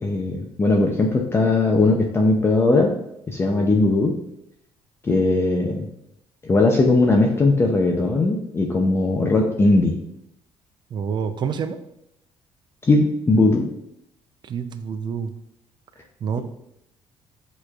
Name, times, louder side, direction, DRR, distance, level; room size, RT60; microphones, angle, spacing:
voice 1, 0.0-2.9 3.3-4.1 5.0-5.9 6.4-10.0 12.9-13.7, left 2 dB, 20° left, 0 dB, 0.5 m, -19 dB
voice 2, 10.9-11.8 14.4-15.3 16.2-16.4, right 7 dB, 40° right, 10 dB, 0.4 m, -27 dB
6.5 x 3.1 x 2.3 m, 0.80 s
cardioid pair, 110°, 11 cm